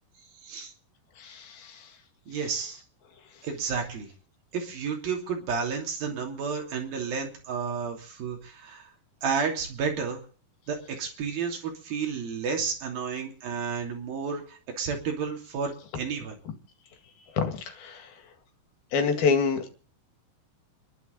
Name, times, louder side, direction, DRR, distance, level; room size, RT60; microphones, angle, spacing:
voice 1, 1.2-1.8 17.4-18.1 18.9-19.7, left 5 dB, 80° left, 6 dB, 4.1 m, -27 dB
voice 2, 2.3-2.8 3.4-4.1 4.5-8.9 9.2-10.2 10.7-16.4, right 5 dB, 75° right, 2 dB, 4.8 m, -31 dB
29.5 x 11.5 x 4.0 m, 0.43 s
omnidirectional pair, 4.3 m